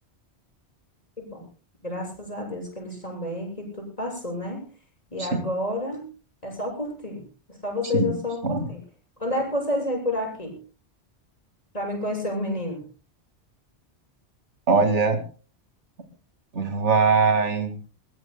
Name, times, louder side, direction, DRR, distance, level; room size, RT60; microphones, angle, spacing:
voice 1, 1.8-4.6 5.1-6.1 6.4-8.8 9.2-10.6 11.7-12.8, left 1 dB, 35° left, 1 dB, 7.1 m, -30 dB
voice 2, 14.7-15.2 16.5-17.7, right 4 dB, 85° right, 6 dB, 2.5 m, -21 dB
22.0 x 21.5 x 2.2 m, 0.37 s
omnidirectional pair, 1.2 m